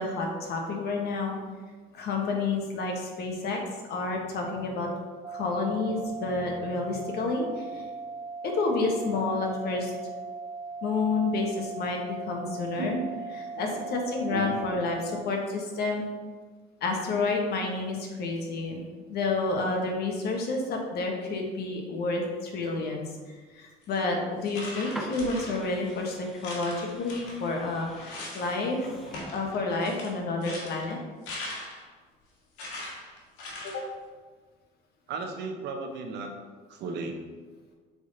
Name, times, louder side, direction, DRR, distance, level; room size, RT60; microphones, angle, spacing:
voice 1, 0.0-1.4 1.9-3.6 3.9-4.9 5.3-7.9 8.4-9.9 10.8-13.0 13.4-16.0 16.8-18.8 19.1-28.9 29.3-31.0 33.6-33.8, left 3 dB, 60° left, 1 dB, 1.4 m, -30 dB
sound 1, 5.2-15.2, right 4 dB, 25° right, 0.4 m, -39 dB
voice 2, 14.3-14.6 35.1-36.3 36.7-37.2, right 4 dB, 65° right, 4 dB, 1.1 m, -35 dB
sound 2, 23.8-24.0 24.4-26.0 26.4-28.5 28.8-31.9 32.6-33.9, left 2 dB, 85° left, 1.9 m, -40 dB
sound 3, 24.6-29.3, equal, ahead, 0.7 m, -45 dB
7.8 x 3.9 x 4.1 m, 1.4 s
cardioid pair, 115°, 19 cm